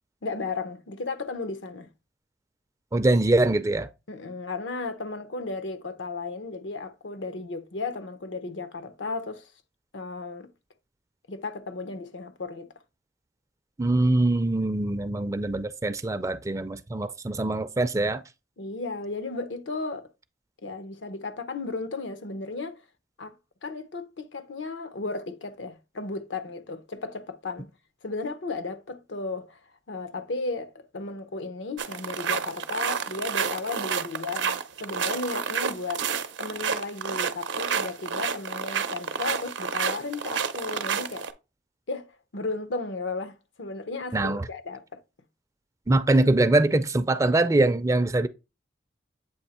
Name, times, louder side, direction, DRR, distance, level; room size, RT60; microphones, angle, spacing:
voice 1, 0.2-1.9 4.1-9.5 9.9-10.5 11.3-12.7 18.6-20.1 20.6-22.8 23.2-23.3 23.6-27.7 28.0-29.6 29.9-36.1 36.4-41.3 41.9-45.0, left 3 dB, 80° left, 0.7 m, -34 dB
voice 2, 2.9-3.9 13.8-18.2 44.1-44.5 45.9-48.3, right 2 dB, 15° right, 0.4 m, -23 dB
sound 1, 31.8-41.3, right 6 dB, 80° right, 0.6 m, -29 dB
7.9 x 2.8 x 4.2 m
head